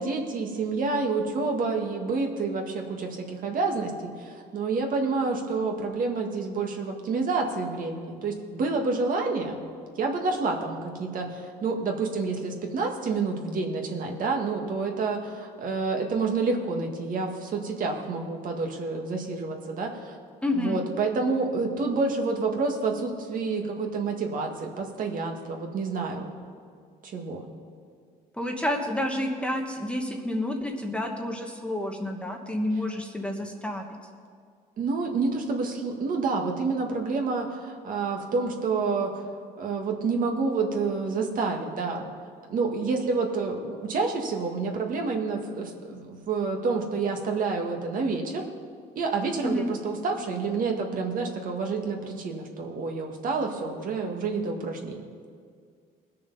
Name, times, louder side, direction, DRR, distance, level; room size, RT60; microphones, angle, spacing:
voice 1, 0.0-9.6 10.0-20.2 20.5-26.3 27.0-27.4 34.8-39.2 39.6-42.1 42.5-48.4 49.0-55.0, right 4 dB, 55° right, 2 dB, 1.8 m, -28 dB
voice 2, 20.4-20.8 28.3-33.8 49.4-49.7, left 1 dB, 5° left, 2 dB, 1.3 m, -29 dB
20.0 x 6.7 x 5.4 m, 2.1 s
cardioid pair, 110°, 17 cm